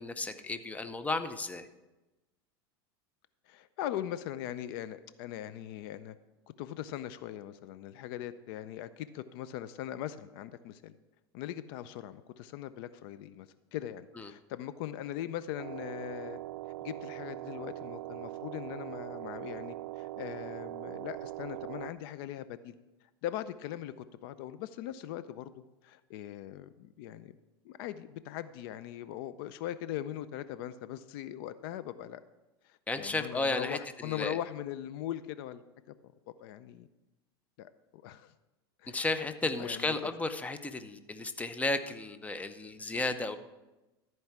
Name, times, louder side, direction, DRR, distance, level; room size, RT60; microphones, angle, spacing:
voice 1, 0.0-1.7 14.2-14.3 32.9-34.4 38.9-43.4, left 2 dB, 10° left, 10 dB, 0.6 m, -34 dB
voice 2, 3.5-6.2 6.6-10.9 11.3-13.5 13.7-16.4 16.8-22.7 23.2-25.5 25.8-27.3 27.6-32.2 32.6-36.1 36.4-36.9 37.6-38.3 38.8-39.0 39.6-40.1, left 12 dB, 65° left, 14 dB, 0.5 m, -40 dB
sound 1, 15.6-21.9, right 16 dB, 70° right, 0.4 m, -41 dB
13.5 x 4.6 x 5.9 m, 1.1 s
supercardioid pair, 110°, 13 cm